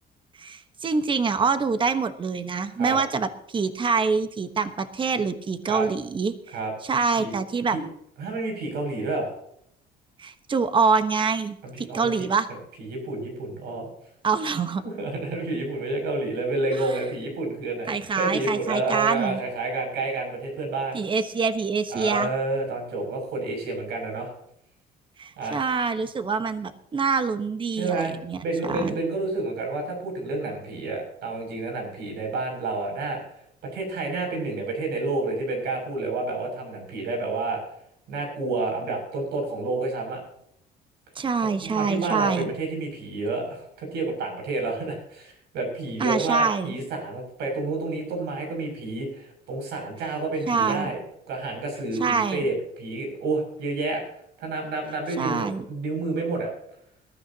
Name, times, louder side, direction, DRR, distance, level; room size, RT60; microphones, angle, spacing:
voice 1, 0.4-6.6 6.8-7.8 10.2-12.5 14.2-14.8 16.7-16.9 17.9-19.4 20.9-22.3 25.2-28.4 28.7-29.0 41.1-42.5 46.0-46.8 50.5-50.9 52.0-52.4 55.2-55.6, right 5 dB, 30° right, 10 dB, 1.2 m, -25 dB
voice 2, 8.2-9.3 11.6-12.3 12.8-13.9 14.8-21.0 21.9-24.3 25.4-25.6 27.7-33.2 33.6-37.6 38.1-40.2 41.6-51.0 51.3-54.0 54.4-56.5, right 3 dB, 80° right, 2 dB, 6.8 m, -29 dB
22.0 x 13.5 x 2.9 m, 0.73 s
cardioid pair, 110°, 17 cm